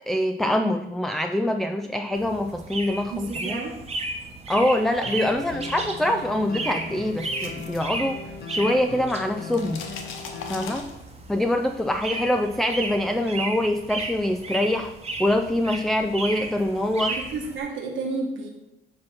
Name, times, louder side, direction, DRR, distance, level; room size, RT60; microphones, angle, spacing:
voice 1, 0.1-3.6 4.5-8.2 8.5-9.9 10.5-11.0 11.3-14.9 15.2-17.2, left 1 dB, ahead, 7 dB, 0.3 m, -24 dB
sound 1, 2.1-17.6, right 2 dB, 30° right, 1.0 m, -35 dB
voice 2, 3.1-3.8 17.1-18.5, right 3 dB, 75° right, 0 dB, 1.2 m, -31 dB
sound 2, 5.0-10.8, left 4 dB, 50° left, 0.8 m, -38 dB
sound 3, 6.9-8.6 8.9-11.4, left 5 dB, 85° left, 0.9 m, -40 dB
7.6 x 2.9 x 5.8 m, 0.94 s
cardioid pair, 90°, 20 cm